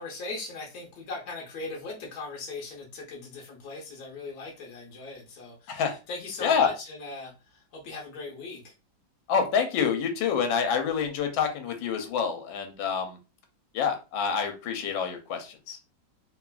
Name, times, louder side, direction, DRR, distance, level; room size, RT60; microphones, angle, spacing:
voice 1, 0.0-8.7, left 3 dB, 60° left, -2 dB, 1.1 m, -39 dB
voice 2, 9.3-13.2 13.7-15.8, left 6 dB, 80° left, 6 dB, 1.3 m, -27 dB
3.2 x 2.4 x 2.2 m, 0.30 s
omnidirectional pair, 2.1 m